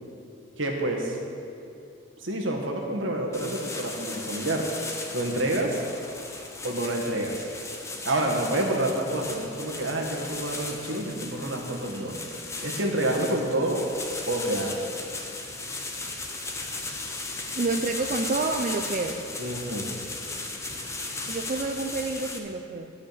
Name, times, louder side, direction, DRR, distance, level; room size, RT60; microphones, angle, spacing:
voice 1, 0.6-1.2 2.2-4.7 5.1-5.8 6.6-7.5 8.0-12.2 12.6-13.8 14.2-14.9 19.4-19.9, right 1 dB, 75° right, 1 dB, 1.6 m, -28 dB
sound 1, 3.3-22.4, left 3 dB, 15° left, 0.8 m, -36 dB
voice 2, 17.5-19.2 21.3-22.9, right 3 dB, 40° right, 3 dB, 0.5 m, -28 dB
13.0 x 5.1 x 8.6 m, 2.7 s
head